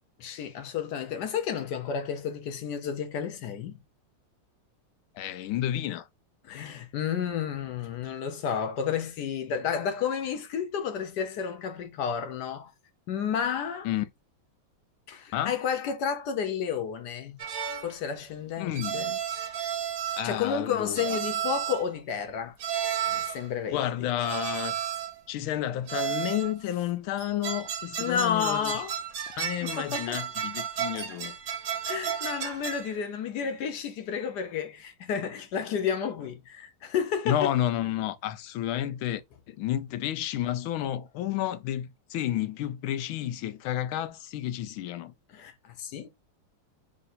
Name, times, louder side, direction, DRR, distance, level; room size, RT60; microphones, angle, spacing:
voice 1, 0.2-3.8 6.4-12.7 13.1-13.9 15.1-17.4 17.8-19.2 20.1-22.6 23.1-23.8 28.0-29.0 29.6-30.2 31.8-37.5 45.3-46.1, left 7 dB, 70° left, 1.1 m, -31 dB
voice 2, 5.1-6.1 13.8-14.0 15.3-15.5 18.6-19.1 20.1-21.2 23.7-24.8 25.3-28.7 29.4-31.3 37.3-39.2 39.5-45.1, left 12 dB, 85° left, 1.4 m, -31 dB
sound 1, 17.4-17.9 18.8-20.4 20.9-21.9 22.6-23.5 24.2-25.2 25.9-26.6 27.2-32.9, right 9 dB, 60° right, 1.0 m, -33 dB
3.7 x 2.6 x 4.1 m
omnidirectional pair, 2.2 m